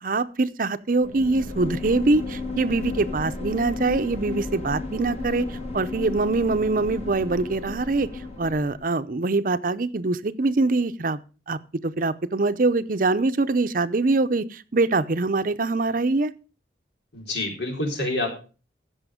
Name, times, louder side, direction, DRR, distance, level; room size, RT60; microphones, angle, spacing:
voice 1, 0.0-8.1 8.4-11.2 11.5-16.3, right 3 dB, 50° right, 13 dB, 0.6 m, -24 dB
sound 1, 1.0-8.9, left 3 dB, 35° left, 1.9 m, -33 dB
voice 2, 17.1-18.3, left 2 dB, 80° left, 2 dB, 3.9 m, -27 dB
15.5 x 6.3 x 5.0 m, 0.36 s
head